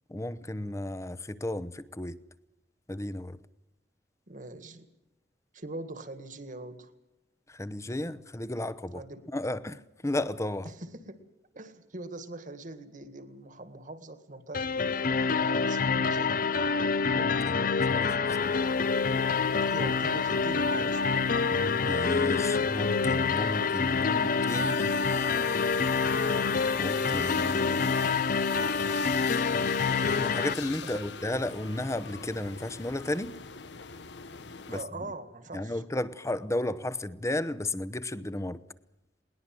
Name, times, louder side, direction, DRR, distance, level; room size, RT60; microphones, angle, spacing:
voice 1, 0.1-2.2 2.9-3.4 7.5-9.0 9.3-10.7 17.1-18.6 21.5-25.0 26.8-28.0 30.1-33.4 34.7-35.1 35.5-38.6, left 1 dB, 15° left, 0.8 m, -34 dB
voice 2, 4.3-4.9 5.5-6.9 8.9-9.3 10.6-11.3 11.5-16.5 19.5-21.0 30.9-31.0 34.7-35.8, right 2 dB, 50° right, 1.9 m, -42 dB
sound 1, 14.5-30.5, left 5 dB, 50° left, 0.7 m, -27 dB
sound 2, 18.3-34.8, left 5 dB, 85° left, 1.1 m, -42 dB
21.0 x 19.5 x 7.7 m
head